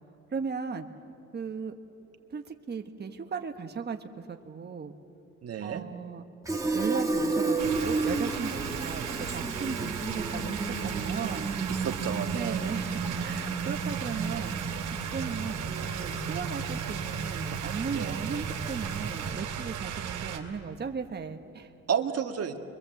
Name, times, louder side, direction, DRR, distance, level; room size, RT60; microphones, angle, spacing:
voice 1, 0.3-0.9 1.3-1.7 2.3-4.9 5.6-6.2 6.7-11.5 12.3-14.5 15.1-21.7, right 5 dB, 35° right, 5 dB, 1.4 m, -36 dB
voice 2, 5.4-5.9 11.7-12.7 17.9-18.1 21.9-22.6, right 7 dB, 50° right, 4 dB, 1.9 m, -31 dB
Fill (with liquid), 6.5-19.6, right 3 dB, 10° right, 2.1 m, -33 dB
sound 1, 7.6-20.4, right 8 dB, 85° right, 2.6 m, -36 dB
28.0 x 22.5 x 7.8 m, 2.6 s
cardioid pair, 90°, 30 cm